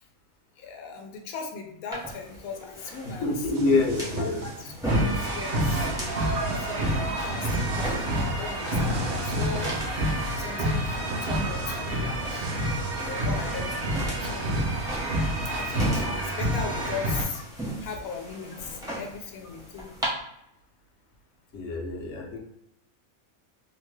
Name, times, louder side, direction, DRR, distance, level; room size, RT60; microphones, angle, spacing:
voice 1, 0.6-3.4 4.4-5.6 6.6-9.8 10.4-12.5 13.0-14.5 15.6-17.4 17.8-19.9, left 5 dB, 85° left, 2 dB, 1.0 m, -38 dB
sound 1, 1.9-20.1, right 1 dB, 5° right, 0.6 m, -37 dB
voice 2, 3.0-4.4 21.5-22.4, left 3 dB, 65° left, 0 dB, 0.9 m, -26 dB
sound 2, 3.5-4.8 5.1-6.9 7.3-8.3 8.6-10.5 10.8-16.0, right 2 dB, 80° right, 1.0 m, -37 dB
sound 3, 4.9-17.2, right 1 dB, 55° right, 0.7 m, -28 dB
2.8 x 2.1 x 3.1 m, 0.80 s
omnidirectional pair, 1.5 m